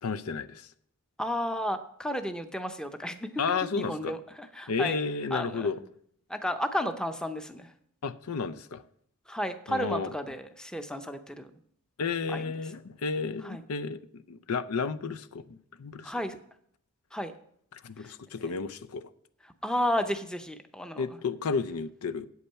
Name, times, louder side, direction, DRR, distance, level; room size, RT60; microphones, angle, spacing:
voice 1, 0.0-0.7 3.4-4.1 4.7-5.8 8.0-8.8 9.7-10.1 12.0-16.1 17.7-19.0 21.0-22.3, left 5 dB, 80° left, 0.5 m, -32 dB
voice 2, 1.2-3.3 3.7-4.9 5.3-5.7 6.3-7.7 9.3-11.5 12.3-12.5 13.4-13.6 16.0-16.4 17.1-17.3 18.0-18.1 19.6-21.1, equal, 5° left, 0.6 m, -32 dB
8.4 x 8.2 x 5.7 m
head